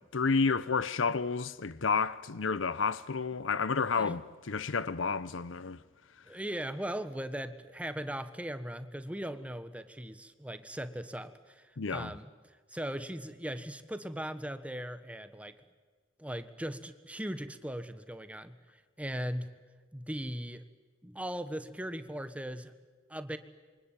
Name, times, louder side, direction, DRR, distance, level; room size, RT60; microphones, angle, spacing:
voice 1, 0.1-5.8 11.8-12.1, left 4 dB, 75° left, 0.8 m, -30 dB
voice 2, 6.3-11.6 11.9-12.3 12.7-15.5 16.2-18.6 19.0-19.6 19.9-20.6 21.0-22.7 23.1-23.4, equal, 5° right, 1.2 m, -38 dB
27.0 x 24.0 x 9.1 m
head